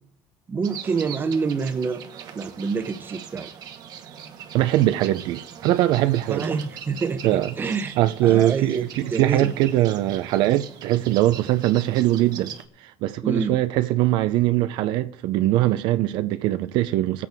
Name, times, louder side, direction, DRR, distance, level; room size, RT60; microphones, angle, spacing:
voice 1, 0.5-2.0 2.3-3.5 6.3-9.5 13.2-13.6, right 5 dB, 25° right, 0.8 m, -27 dB
sound 1, 0.6-12.7, right 8 dB, 55° right, 1.1 m, -41 dB
voice 2, 4.5-6.5 7.2-7.5 8.0-12.5 12.8-17.3, right 14 dB, 70° right, 0.5 m, -21 dB
18.0 x 8.3 x 3.5 m
cardioid pair, 115°, 8 cm